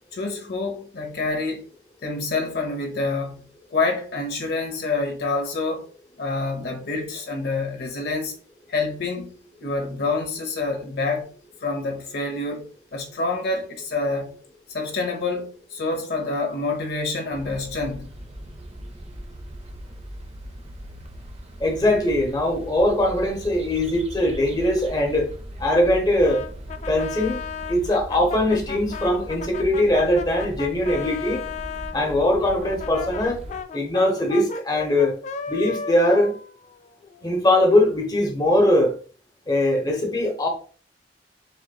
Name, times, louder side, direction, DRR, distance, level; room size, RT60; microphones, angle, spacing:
voice 1, 0.1-1.6 2.0-5.9 6.2-8.3 8.7-9.3 9.6-11.3 11.6-12.7 12.9-14.3 14.7-18.2, left 3 dB, 65° left, 0.9 m, -27 dB
sound 1, 17.3-33.6, right 1 dB, 35° right, 0.6 m, -38 dB
voice 2, 21.6-25.3 25.6-26.4 26.9-27.4 27.7-31.4 31.9-33.4 33.7-35.2 35.5-36.3 37.2-38.9 39.5-40.5, left 1 dB, 25° left, 1.0 m, -21 dB
Brass instrument, 26.2-32.0 32.6-37.3, left 6 dB, 40° left, 0.3 m, -35 dB
6.5 x 3.0 x 2.3 m
head